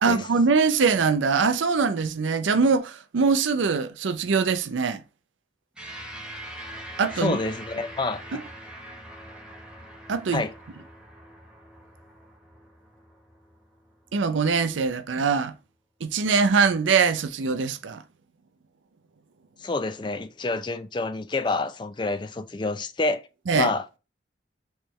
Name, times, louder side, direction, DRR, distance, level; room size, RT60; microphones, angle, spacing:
voice 1, 0.0-5.0 7.0-7.4 8.3-8.4 10.1-10.4 14.1-15.5 16.0-18.0 23.5-23.7, right 5 dB, 90° right, 0.5 m, -23 dB
sound 1, 5.8-14.4, right 1 dB, 5° right, 1.0 m, -43 dB
voice 2, 7.1-8.4 10.3-10.5 19.6-23.3 23.5-24.0, left 3 dB, 25° left, 0.4 m, -28 dB
4.5 x 3.3 x 3.1 m
head